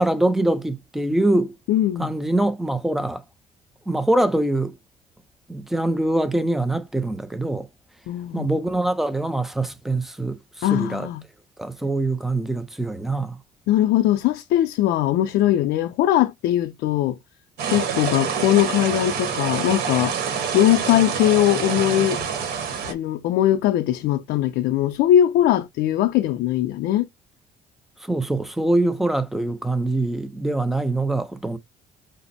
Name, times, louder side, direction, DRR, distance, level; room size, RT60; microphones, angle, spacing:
voice 1, 0.0-1.5 2.0-3.2 3.9-4.7 5.5-7.7 8.3-11.1 11.6-13.4 28.0-31.6, right 2 dB, ahead, 0.5 m, -23 dB
voice 2, 1.7-2.1 8.1-8.5 10.6-11.2 13.7-17.2 17.7-20.1 20.5-22.2 22.9-27.1, left 12 dB, 80° left, 0.5 m, -20 dB
sound 1, 17.6-22.9, right 7 dB, 70° right, 1.3 m, -26 dB
5.0 x 2.0 x 4.1 m
cardioid pair, 110°, 17 cm